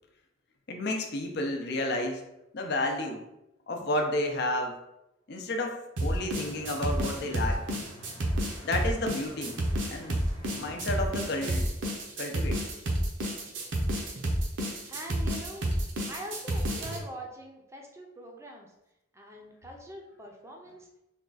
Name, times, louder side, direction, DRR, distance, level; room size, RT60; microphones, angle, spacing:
voice 1, 0.7-2.2 2.5-3.2 3.7-4.8 5.3-7.7 8.6-10.2 10.5-11.7 12.2-12.6, left 1 dB, 60° left, 3 dB, 0.6 m, -31 dB
sound 1, 6.0-17.0, right 1 dB, 75° right, 0.7 m, -30 dB
sound 2, 6.3-11.5, left 1 dB, 20° left, 0.8 m, -46 dB
voice 2, 14.9-15.7 16.1-18.7 19.1-20.9, equal, 15° right, 1 dB, 0.5 m, -43 dB
3.5 x 2.3 x 3.9 m, 0.88 s
head